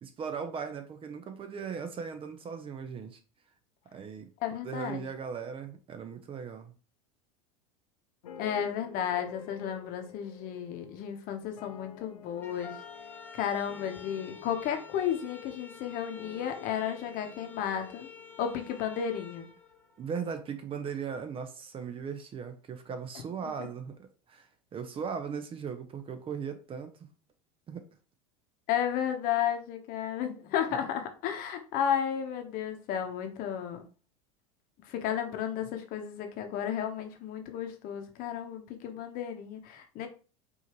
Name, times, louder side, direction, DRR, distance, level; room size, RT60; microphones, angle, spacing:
voice 1, 0.0-3.2 3.9-6.7 20.0-24.5 24.7-26.9 27.7-27.8, right 6 dB, 30° right, 0.7 m, -38 dB
voice 2, 4.4-5.0 8.4-12.7 13.3-18.1 18.4-19.5 23.6-23.7 28.7-33.8 34.9-40.1, left 9 dB, 50° left, 0.9 m, -33 dB
sound 1, 8.2-19.3, left 8 dB, 85° left, 0.8 m, -50 dB
sound 2, 12.3-20.5, left 4 dB, 10° left, 0.8 m, -51 dB
4.8 x 2.7 x 3.0 m
hypercardioid pair, 100°, 18 cm